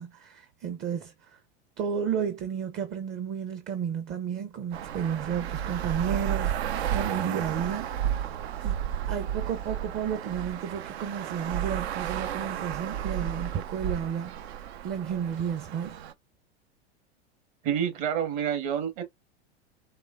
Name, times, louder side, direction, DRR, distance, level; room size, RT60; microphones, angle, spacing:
voice 1, 0.0-1.4 1.8-8.4 8.6-8.8 9.1-16.0, right 8 dB, 35° right, 0.8 m, -32 dB
Traffic noise roadway noise, 4.7-16.1, right 10 dB, 70° right, 0.7 m, -32 dB
voice 2, 17.6-19.0, right 9 dB, 55° right, 2.0 m, -28 dB
4.7 x 3.2 x 2.7 m
hypercardioid pair, 95°, 33 cm